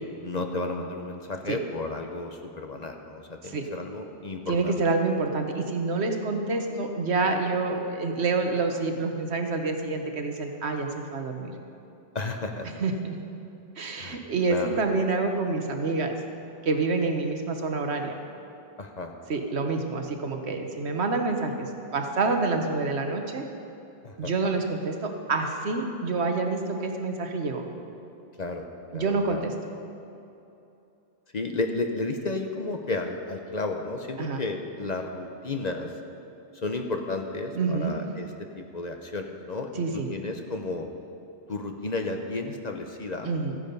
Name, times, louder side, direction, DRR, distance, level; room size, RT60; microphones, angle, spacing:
voice 1, 0.2-4.8 12.1-12.7 14.0-14.2 14.5-14.8 18.8-19.1 24.0-24.3 28.4-28.7 28.9-29.4 31.3-35.9 36.5-38.3 38.5-40.9 41.5-43.3, left 2 dB, 45° left, 4 dB, 0.9 m, -32 dB
voice 2, 4.5-11.5 12.8-13.2 13.8-16.2 16.6-18.1 19.3-23.4 24.2-27.6 28.9-29.5 34.2-34.4 37.5-37.9 39.8-40.1 43.3-43.6, right 3 dB, 75° right, 4 dB, 1.3 m, -27 dB
14.0 x 9.9 x 5.4 m, 2.8 s
omnidirectional pair, 1.1 m